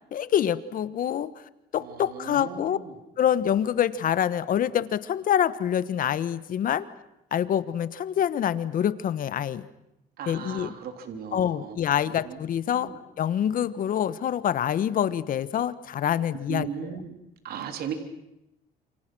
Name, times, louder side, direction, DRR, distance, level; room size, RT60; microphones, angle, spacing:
voice 1, 0.1-1.3 1.7-2.8 3.2-6.9 7.3-9.6 10.3-10.7 11.3-12.9 13.2-16.9, left 10 dB, 55° left, 15 dB, 1.3 m, -26 dB
voice 2, 1.8-2.9 10.2-11.8 12.0-12.4 12.7-12.9 16.5-17.1 17.4-17.9, right 8 dB, 65° right, 6 dB, 3.4 m, -37 dB
29.0 x 27.5 x 6.3 m, 0.87 s
cardioid pair, 110°, 17 cm